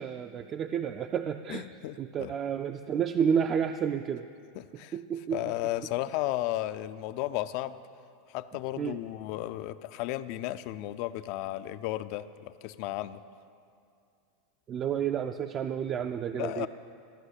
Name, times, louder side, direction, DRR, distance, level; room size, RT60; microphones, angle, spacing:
voice 1, 0.0-1.7 2.0-4.3 4.9-5.4 8.8-9.0 14.7-16.7, right 8 dB, 35° right, 7 dB, 0.3 m, -30 dB
voice 2, 1.5-2.3 4.6-5.0 5.3-7.8 8.3-13.2 16.3-16.7, left 15 dB, 55° left, 13 dB, 0.4 m, -34 dB
13.5 x 5.5 x 8.2 m, 2.4 s
supercardioid pair, 125°, 0 cm